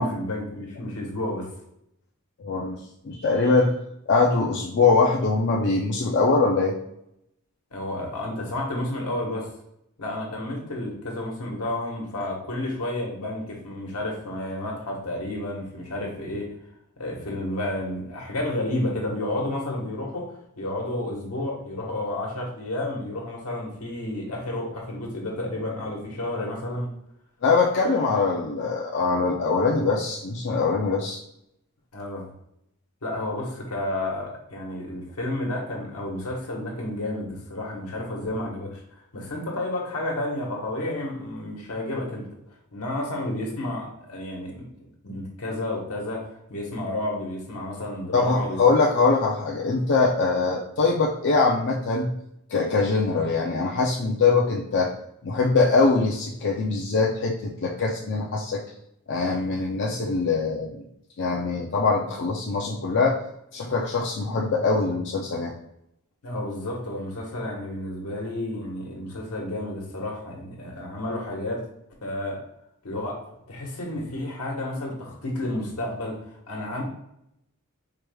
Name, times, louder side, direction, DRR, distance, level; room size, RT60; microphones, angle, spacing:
voice 1, 0.0-1.5 7.7-9.5 10.0-16.5 17.0-26.9 31.9-32.3 33.0-48.6 66.2-71.6 72.0-72.4 72.8-73.2 73.5-76.2 76.5-76.8, left 1 dB, 85° left, -1 dB, 1.2 m, -31 dB
voice 2, 2.4-2.8 3.0-3.7 4.1-6.7 27.4-31.2 48.1-52.1 52.5-54.9 55.2-58.6 59.1-60.8 61.2-63.2 63.5-65.5, left 4 dB, 55° left, -2 dB, 0.5 m, -22 dB
4.6 x 3.2 x 2.3 m, 0.79 s
head